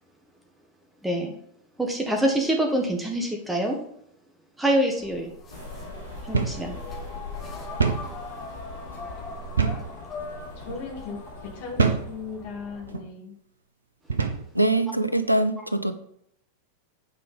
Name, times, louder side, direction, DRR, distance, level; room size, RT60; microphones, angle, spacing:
voice 1, 1.0-1.3 1.8-3.8 4.6-5.3 6.3-6.7, right 1 dB, 5° right, 1.5 m, -25 dB
sound 1, 5.0-12.9, left 2 dB, 25° left, 2.0 m, -40 dB
sound 2, 5.5-12.5, left 3 dB, 80° left, 3.9 m, -43 dB
sound 3, 6.3-6.6 7.0-7.1 7.8-8.1 9.6-9.9 10.6-10.8 11.8-12.1 12.9-13.1 14.1-14.5, right 5 dB, 75° right, 1.0 m, -24 dB
voice 2, 10.6-13.3, left 4 dB, 50° left, 2.5 m, -37 dB
voice 3, 14.5-15.9, right 2 dB, 90° right, 0.7 m, -23 dB
9.3 x 5.0 x 5.3 m
figure-of-eight pair, 90°, 0 cm